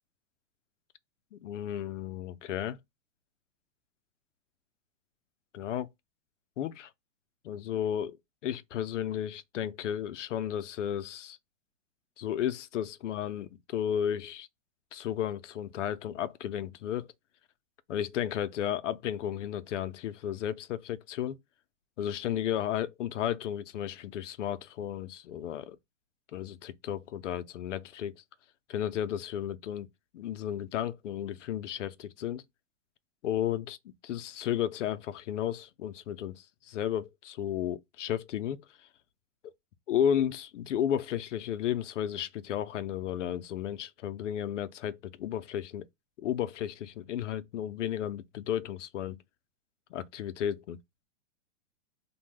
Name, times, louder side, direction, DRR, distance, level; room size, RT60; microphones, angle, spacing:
voice 1, 1.3-2.8 5.5-5.9 6.6-6.9 7.4-8.2 8.4-11.4 12.2-14.5 14.9-17.1 17.9-21.4 22.0-25.8 26.3-28.1 28.7-29.9 30.1-32.4 33.2-33.8 34.0-38.6 39.9-45.9 46.2-49.2 49.9-50.8, left 10 dB, 85° left, 0.5 m, -33 dB
2.6 x 2.2 x 3.1 m
hypercardioid pair, 135°, 36 cm